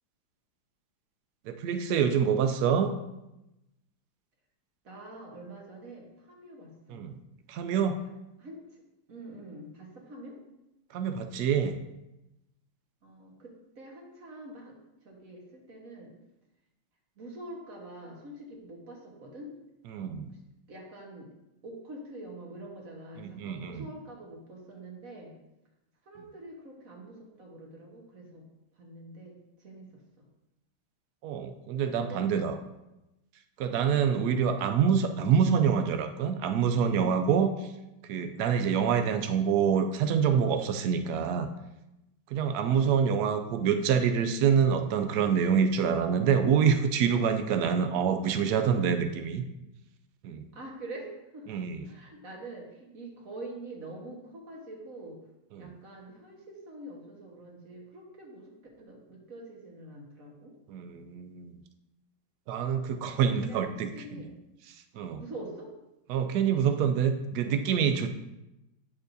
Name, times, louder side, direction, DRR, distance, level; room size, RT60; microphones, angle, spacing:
voice 1, 1.5-2.9 6.9-7.2 7.5-8.0 10.9-11.7 19.9-20.3 23.2-23.8 31.2-32.5 33.6-37.7 38.0-41.5 42.3-49.4 50.2-50.5 51.5-51.8 55.5-55.7 60.7-61.5 62.5-64.2 64.7-65.2 66.1-68.1, right 7 dB, 90° right, 7 dB, 0.8 m, -26 dB
voice 2, 4.8-7.1 8.0-8.1 8.4-8.8 9.1-10.4 13.0-14.7 15.0-16.1 17.2-19.5 20.7-21.3 21.6-25.3 26.0-28.4 28.7-29.9 30.2-30.3 32.0-32.4 34.4-34.7 42.6-43.1 50.5-55.2 55.6-60.5 63.3-64.4 65.0-65.7, right 1 dB, 45° right, -1 dB, 1.7 m, -45 dB
9.8 x 6.6 x 2.7 m, 0.93 s
omnidirectional pair, 2.3 m